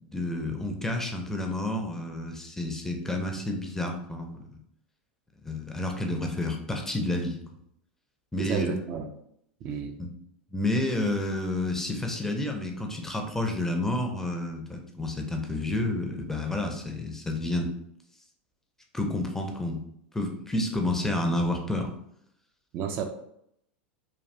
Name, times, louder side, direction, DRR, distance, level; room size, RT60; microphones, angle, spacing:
voice 1, 0.0-4.5 5.4-7.4 8.3-8.8 10.0-10.1 10.5-17.7 18.9-19.8 20.1-21.9, left 1 dB, 5° left, 3 dB, 0.5 m, -30 dB
voice 2, 8.4-9.1 9.6-10.0 22.7-23.0, right 7 dB, 45° right, 5 dB, 0.4 m, -31 dB
3.3 x 2.3 x 2.5 m, 0.73 s
hypercardioid pair, 90°, 6 cm